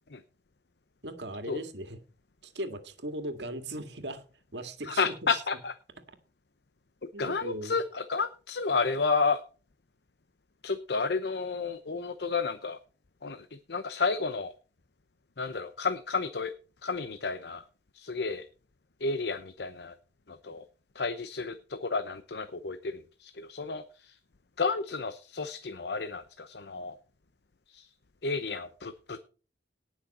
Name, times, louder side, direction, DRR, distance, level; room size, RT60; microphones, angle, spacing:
voice 1, 1.0-2.0 2.4-4.2 4.5-5.4 7.1-7.8, right 1 dB, 85° right, 9 dB, 1.9 m, -38 dB
voice 2, 4.9-5.7 7.2-9.4 10.6-12.8 13.2-14.5 15.4-16.5 16.8-17.6 17.9-18.5 19.0-19.9 20.3-20.6 20.9-24.2 24.6-26.9 27.7-27.9 28.2-29.2, left 4 dB, 75° left, 11 dB, 0.8 m, -31 dB
18.0 x 6.3 x 4.2 m, 0.36 s
head